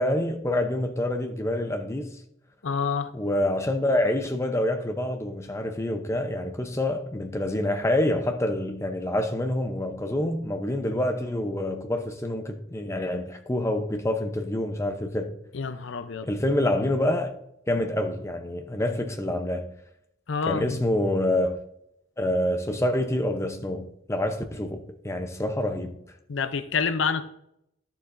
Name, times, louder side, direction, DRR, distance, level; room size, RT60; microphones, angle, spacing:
voice 1, 0.0-2.1 3.1-15.3 16.2-17.3 17.7-19.7 20.5-21.6 22.2-25.9, left 1 dB, 15° left, 0.7 m, -27 dB
voice 2, 2.6-3.1 15.5-16.3 20.3-20.8 26.3-27.3, left 5 dB, 75° left, 0.6 m, -27 dB
11.5 x 7.0 x 2.6 m
head